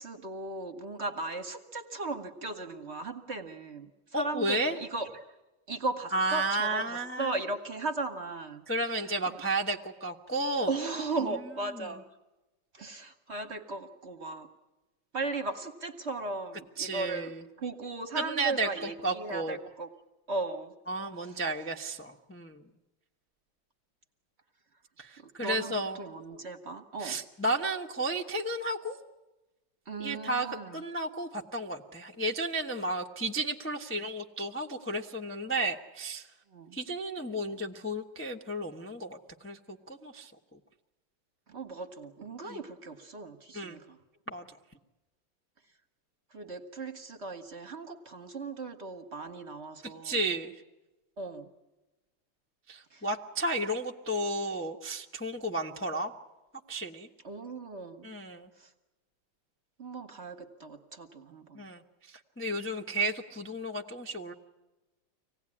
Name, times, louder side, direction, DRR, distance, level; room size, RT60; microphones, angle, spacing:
voice 1, 0.0-5.3 5.7-9.4 10.7-12.0 12.7-14.5 15.1-17.3 17.6-19.9 20.3-20.7 21.2-21.4 25.2-27.2 29.9-30.8 36.5-36.8 41.5-44.0 46.3-50.2 51.2-51.5 52.9-53.1 57.2-58.1 58.6-58.7 59.8-61.6, right 3 dB, 40° right, 7 dB, 1.1 m, -37 dB
voice 2, 4.1-4.8 6.1-7.3 8.7-10.7 11.7-11.9 16.8-17.4 18.1-19.6 20.9-22.6 25.0-26.0 27.0-29.0 30.0-36.3 36.7-39.2 39.4-40.3 42.5-42.6 43.5-43.8 44.3-44.4 49.8-50.5 52.7-56.1 56.7-57.1 58.0-58.5 61.5-61.8 62.1-64.3, right 2 dB, 20° left, 2 dB, 0.3 m, -33 dB
25.0 x 18.0 x 9.8 m, 1.1 s
omnidirectional pair, 2.4 m